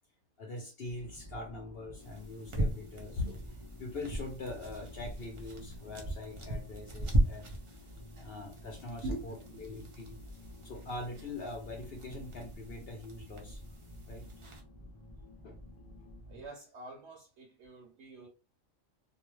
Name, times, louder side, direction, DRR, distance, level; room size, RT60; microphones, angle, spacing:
voice 1, 0.4-7.5 8.2-10.2 10.6-13.6 14.1-14.3 15.4-15.6, left 2 dB, 60° left, 0.8 m, -42 dB
sound 1, 0.8-16.5, left 1 dB, 40° left, 0.4 m, -51 dB
sound 2, 2.0-14.6, right 1 dB, 40° right, 0.4 m, -38 dB
voice 2, 9.0-9.6 10.1-10.3 16.3-18.3, right 1 dB, 70° right, 0.9 m, -43 dB
2.4 x 2.2 x 3.0 m
omnidirectional pair, 1.3 m